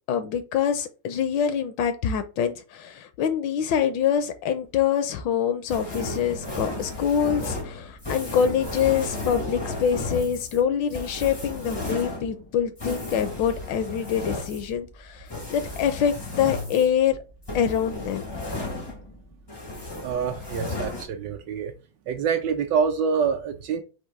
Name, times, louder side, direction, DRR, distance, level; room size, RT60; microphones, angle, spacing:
voice 1, 0.1-17.2 17.5-18.4, left 8 dB, 75° left, 1.2 m, -25 dB
sound 1, 5.7-19.2 19.5-21.0, left 2 dB, 40° left, 0.3 m, -34 dB
voice 2, 20.0-21.7 22.1-23.8, right 6 dB, 70° right, 1.1 m, -26 dB
4.4 x 2.6 x 4.6 m
omnidirectional pair, 2.2 m